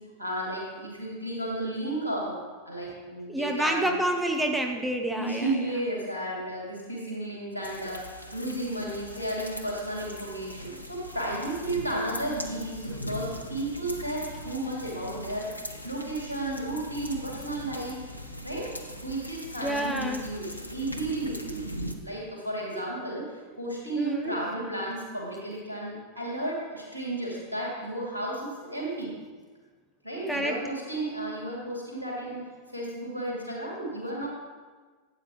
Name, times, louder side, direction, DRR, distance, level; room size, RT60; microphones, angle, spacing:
voice 1, 0.2-2.4 2.7-4.0 5.2-18.0 18.4-18.7 19.0-21.6 22.0-29.1 30.0-32.4 32.7-34.3, right 1 dB, 85° right, -3 dB, 2.6 m, -33 dB
voice 2, 3.3-5.7 19.6-20.3 22.7-22.8 24.0-24.3 30.3-30.6, right 1 dB, 5° right, 3 dB, 0.8 m, -28 dB
sound 1, 7.6-21.9, equal, 85° left, 0.7 m, -40 dB
12.0 x 8.6 x 3.1 m, 1.4 s
figure-of-eight pair, 90°, 0 cm